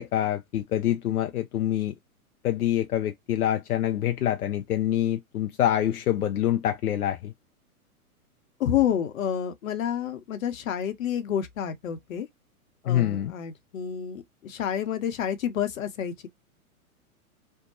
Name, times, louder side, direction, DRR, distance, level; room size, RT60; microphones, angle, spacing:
voice 1, 0.0-1.9 2.4-7.3 12.9-13.3, left 12 dB, 85° left, 0.5 m, -26 dB
voice 2, 8.6-12.3 12.8-16.3, left 9 dB, 65° left, 0.8 m, -29 dB
2.7 x 2.2 x 2.6 m
hypercardioid pair, 115°, 44 cm